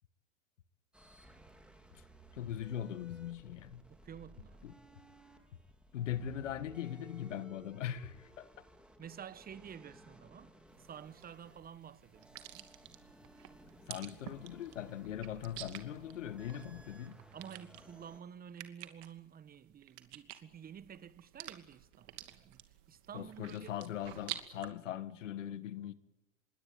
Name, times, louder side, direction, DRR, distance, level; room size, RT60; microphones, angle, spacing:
sound 1, 0.9-18.2, right 1 dB, 5° right, 3.8 m, -59 dB
voice 1, 2.3-3.8 4.6-4.7 5.9-8.6 13.9-17.2 23.1-25.9, left 10 dB, 80° left, 1.6 m, -40 dB
voice 2, 3.9-4.6 9.0-12.7 17.3-22.6 22.9-23.7, right 8 dB, 25° right, 1.2 m, -51 dB
sound 2, 10.7-24.7, right 15 dB, 60° right, 2.7 m, -50 dB
26.5 x 22.0 x 9.2 m
hypercardioid pair, 95°, 37 cm